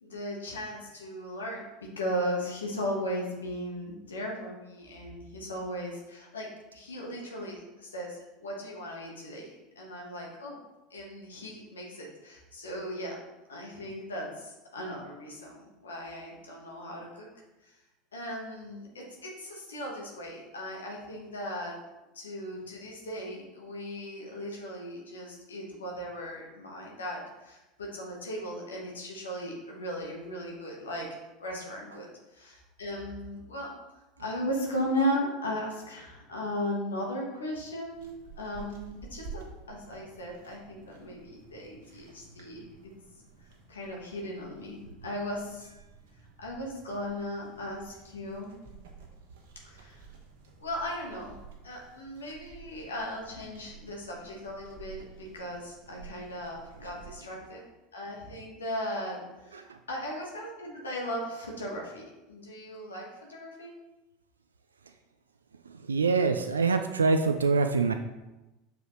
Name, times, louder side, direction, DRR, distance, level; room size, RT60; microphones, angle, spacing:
voice 1, 0.0-10.6 10.9-13.2 13.5-17.3 17.6-17.8 18.1-21.8 22.1-31.1 31.4-33.7 34.2-38.0 38.4-42.9 43.7-45.7 46.4-48.5 49.6-50.0 50.6-51.4 51.6-57.6 57.9-63.7, equal, 80° left, -2 dB, 1.4 m, -37 dB
sound 1, 37.9-57.2, right 5 dB, 70° right, 1.1 m, -51 dB
voice 2, 65.7-67.9, right 4 dB, 85° right, 7 dB, 0.3 m, -25 dB
6.2 x 4.9 x 3.2 m, 1.0 s
figure-of-eight pair, 80°, 0 cm